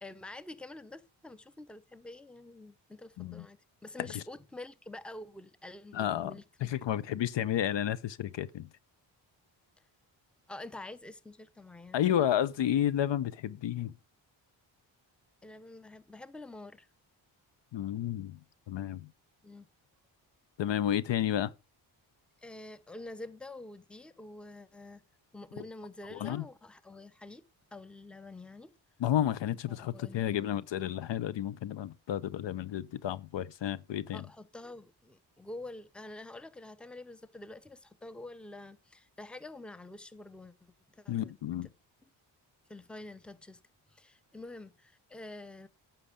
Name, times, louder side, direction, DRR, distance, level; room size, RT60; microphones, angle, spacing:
voice 1, 0.0-6.4 6.7-6.8 10.5-12.3 15.4-16.9 19.4-19.7 22.4-25.0 25.3-28.7 29.7-30.5 34.1-40.5 40.9-41.3 41.6-41.7 42.7-43.6 43.9-45.7, left 2 dB, ahead, 0.7 m, -47 dB
voice 2, 5.9-6.3 6.6-8.7 11.9-13.9 17.7-18.4 18.7-19.1 20.6-21.5 26.1-26.4 29.0-34.2 41.1-41.7, left 11 dB, 65° left, 0.7 m, -31 dB
9.8 x 5.9 x 5.1 m
cardioid pair, 60°, 48 cm